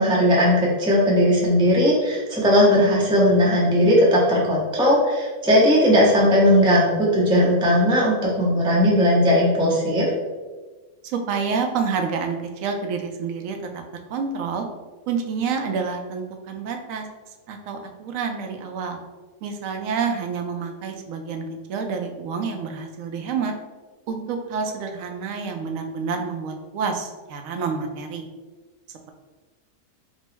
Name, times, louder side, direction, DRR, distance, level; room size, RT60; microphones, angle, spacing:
voice 1, 0.0-10.1, equal, 5° right, -5 dB, 0.4 m, -18 dB
voice 2, 11.0-13.8 14.1-14.7 15.1-17.1 17.5-19.0 19.4-23.5 24.1-28.3, right 5 dB, 70° right, 4 dB, 0.9 m, -28 dB
5.2 x 2.0 x 3.3 m, 1.3 s
omnidirectional pair, 1.6 m